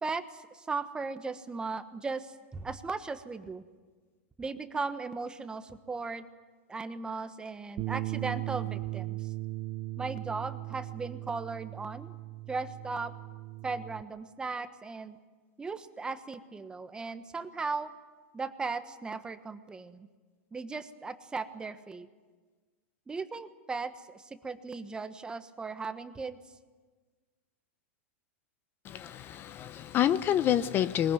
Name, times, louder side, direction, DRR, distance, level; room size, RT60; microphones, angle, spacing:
voice 1, 0.0-3.6 4.4-6.2 6.7-9.3 10.0-12.1 12.5-13.1 13.6-15.2 15.6-17.9 18.3-20.1 20.5-22.1 23.1-26.4, right 4 dB, 10° right, 10 dB, 1.2 m, -37 dB
Bass guitar, 7.8-14.0, right 18 dB, 40° right, 0.7 m, -38 dB
voice 2, 28.8-31.1, left 10 dB, 30° left, 13 dB, 0.8 m, -28 dB
21.5 x 21.0 x 9.3 m, 1.4 s
hypercardioid pair, 130°, 7 cm